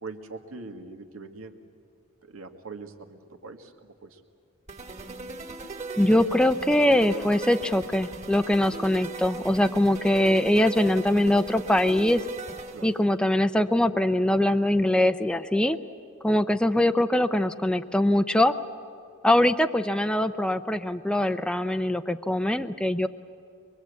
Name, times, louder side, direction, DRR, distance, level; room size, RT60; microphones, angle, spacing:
voice 1, 0.0-1.6 2.2-4.2 12.7-12.9, right 3 dB, 80° right, 4 dB, 1.9 m, -42 dB
sound 1, 4.7-13.0, right 3 dB, 35° right, 2.3 m, -39 dB
voice 2, 6.0-12.2 12.8-15.8 16.2-18.5 19.2-23.1, left 1 dB, 5° left, 9 dB, 0.5 m, -22 dB
24.0 x 23.5 x 8.3 m, 2.4 s
head